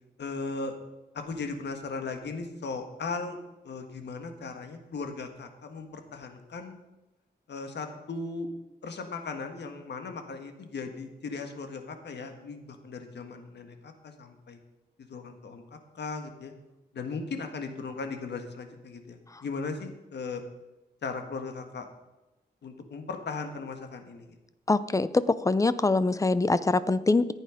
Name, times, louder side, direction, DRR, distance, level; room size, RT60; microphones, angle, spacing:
voice 1, 0.2-0.7 1.1-3.4 3.6-6.7 7.5-8.5 8.8-14.6 15.1-15.6 15.9-16.5 16.9-20.4 21.0-21.9 22.6-24.4, left 4 dB, 80° left, 6 dB, 1.7 m, -37 dB
voice 2, 24.7-27.3, left 3 dB, 20° left, 15 dB, 0.5 m, -24 dB
14.5 x 9.0 x 5.0 m, 1.0 s
wide cardioid pair, 120°, 18 cm